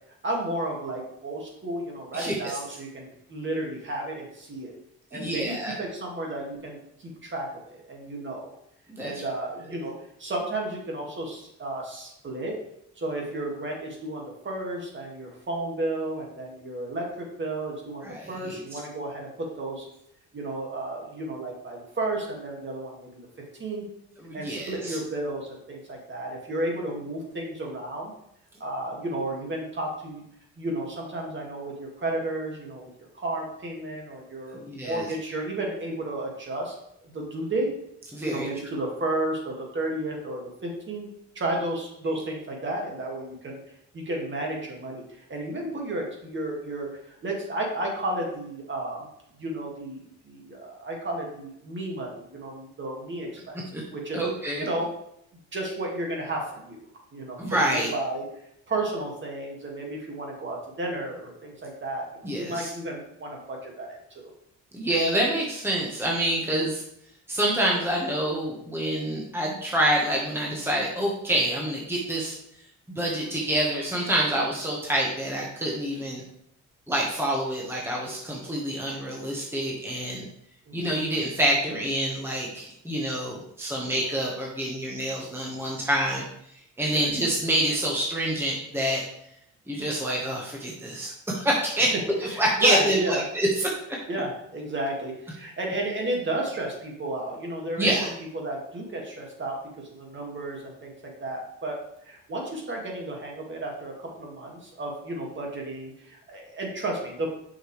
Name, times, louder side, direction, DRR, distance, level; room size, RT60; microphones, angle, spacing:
voice 1, 0.2-4.7 5.1-8.5 9.0-9.9 10.2-12.5 13.0-19.9 20.3-23.3 23.6-23.8 24.3-28.1 28.6-30.2 30.6-32.9 33.1-36.7 37.0-37.7 38.2-41.1 41.4-43.6 43.9-46.9 47.2-49.1 49.4-53.6 53.9-54.2 54.6-54.9 55.5-56.8 57.1-58.2 58.7-64.3 80.7-80.9 86.9-87.1 92.3-93.2 94.1-99.6 99.9-101.8 102.0-107.3, right 1 dB, 40° right, -1 dB, 2.1 m, -32 dB
voice 2, 5.1-5.7 8.9-9.1 18.0-18.5 24.2-25.0 34.6-35.0 38.1-38.5 53.7-53.8 54.1-54.6 57.4-57.9 62.2-62.7 64.7-66.8 67.3-72.4 72.9-76.2 76.9-80.2 80.7-86.2 86.8-89.0 89.7-91.9 92.4-93.7 97.8-98.1, right 1 dB, 10° right, -3 dB, 1.4 m, -27 dB
6.5 x 6.0 x 3.3 m, 0.77 s
cardioid pair, 90°, 30 cm